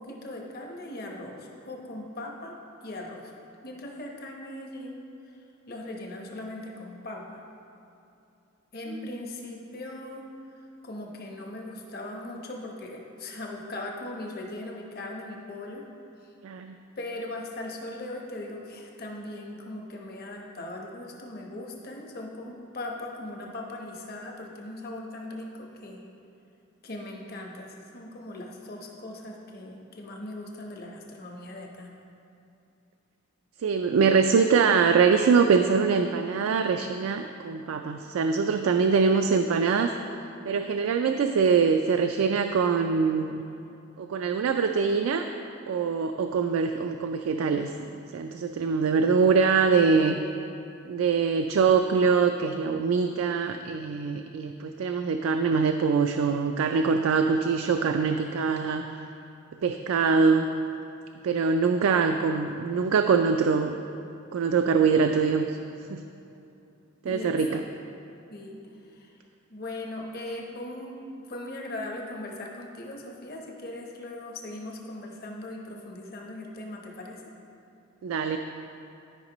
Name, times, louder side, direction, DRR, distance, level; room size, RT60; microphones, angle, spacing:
voice 1, 0.0-2.6 2.8-3.3 3.6-5.0 5.2-5.4 5.7-7.4 8.7-10.2 10.5-15.8 16.2-16.3 17.0-26.1 26.8-31.9 67.0-67.6 68.3-69.1 69.5-71.0 71.3-77.2, left 1 dB, 45° left, 0 dB, 0.9 m, -39 dB
voice 2, 16.4-16.7 33.6-39.9 40.4-43.4 44.0-45.3 45.7-47.7 48.1-50.2 50.8-58.9 59.6-60.5 61.2-63.7 64.3-65.5 65.9-66.0 67.0-67.5 78.0-78.4, right 5 dB, 85° right, 6 dB, 0.3 m, -23 dB
13.0 x 5.2 x 3.0 m, 2.7 s
head